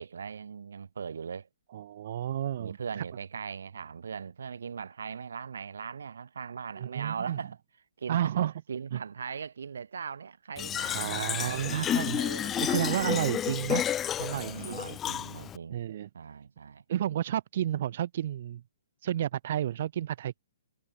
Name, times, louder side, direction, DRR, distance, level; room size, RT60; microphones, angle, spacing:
voice 1, 0.0-1.5 2.6-7.6 8.0-8.3 8.7-13.2 14.3-15.8 16.1-16.8, right 6 dB, 80° right, 5.6 m, -39 dB
voice 2, 1.7-3.0 6.8-7.4 8.1-8.5 8.9-9.0 10.9-12.2 12.5-13.9 14.2-14.8 15.7-16.1 16.9-18.6 19.0-20.4, right 11 dB, 45° right, 1.8 m, -31 dB
Fill (with liquid), 10.6-15.6, left 10 dB, 10° left, 1.4 m, -31 dB
hypercardioid pair, 170°, 0 cm